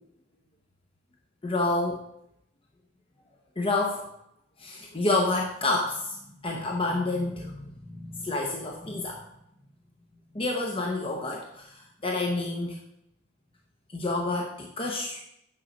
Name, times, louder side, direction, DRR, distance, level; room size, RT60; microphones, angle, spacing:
voice 1, 1.4-2.0 3.6-4.0 4.6-6.2 6.4-9.2 10.3-12.8 13.9-15.2, left 2 dB, 25° left, 0 dB, 0.8 m, -29 dB
8.8 x 5.5 x 5.1 m, 0.76 s
head